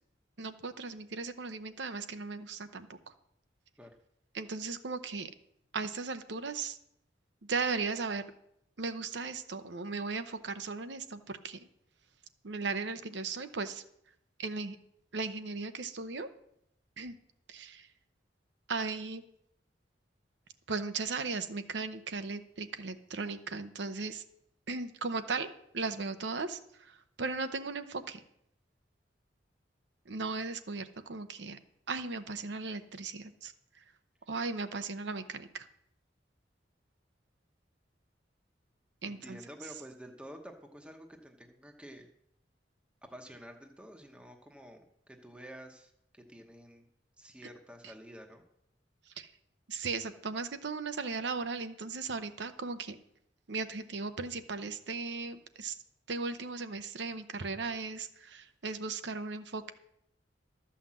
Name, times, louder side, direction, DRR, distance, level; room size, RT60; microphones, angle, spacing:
voice 1, 0.4-3.1 4.3-5.3 5.7-6.8 7.4-8.2 8.8-11.7 12.4-13.8 14.4-14.8 15.1-16.3 17.0-17.2 17.5-17.9 18.7-19.2 20.7-24.2 24.7-28.2 30.1-31.6 31.9-33.8 34.3-35.7 39.0-39.4 49.1-49.3 49.7-53.0 53.5-55.8 56.1-59.7, right 4 dB, 75° right, 10 dB, 0.8 m, -37 dB
voice 2, 39.0-42.1 43.1-46.9 47.2-48.4, equal, 5° right, 3 dB, 0.9 m, -50 dB
12.5 x 5.7 x 7.4 m, 0.76 s
head